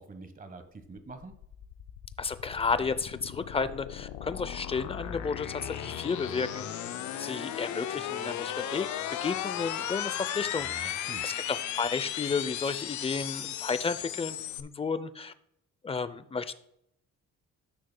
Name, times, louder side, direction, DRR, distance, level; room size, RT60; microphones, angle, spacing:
voice 1, 0.0-1.3 10.6-11.3, right 3 dB, 30° right, 9 dB, 1.2 m, -46 dB
sound 1, 0.8-14.6, left 11 dB, 75° left, 0.6 m, -36 dB
voice 2, 2.2-6.7 7.2-10.9 11.2-15.3 15.8-16.5, left 5 dB, 20° left, 14 dB, 0.5 m, -32 dB
sound 2, 4.6-14.4, right 1 dB, 60° right, 2.4 m, -54 dB
13.0 x 6.3 x 2.2 m, 0.75 s
cardioid pair, 90°, 30 cm